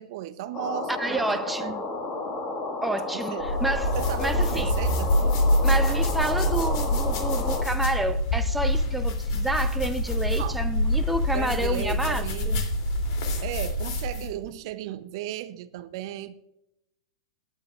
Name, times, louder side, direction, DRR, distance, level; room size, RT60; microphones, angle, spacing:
voice 1, 0.0-1.8 3.1-3.4 3.9-5.4 5.9-6.0 10.4-10.7 11.3-12.6 13.4-16.3, right 12 dB, 55° right, 0.7 m, -35 dB
sound 1, 0.5-7.6, left 2 dB, 25° left, 1.9 m, -32 dB
voice 2, 1.0-1.8 2.8-3.9 4.2-4.7 5.6-12.6, right 1 dB, 5° right, 0.7 m, -29 dB
sound 2, 3.4-14.4, left 1 dB, 55° left, 2.9 m, -25 dB
19.0 x 9.8 x 2.4 m
hypercardioid pair, 130°, 3 cm